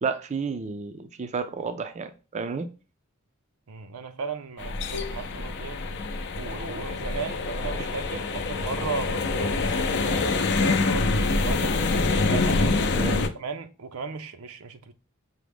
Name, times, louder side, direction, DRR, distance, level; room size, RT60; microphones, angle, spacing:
voice 1, 0.0-2.7 12.9-13.3, right 5 dB, 35° right, 0.4 m, -31 dB
voice 2, 3.7-5.8 6.4-11.8 12.3-14.9, right 4 dB, 85° right, 0.6 m, -36 dB
sound 1, 4.6-13.3, left 3 dB, 55° left, 0.5 m, -26 dB
6.0 x 2.1 x 3.4 m
head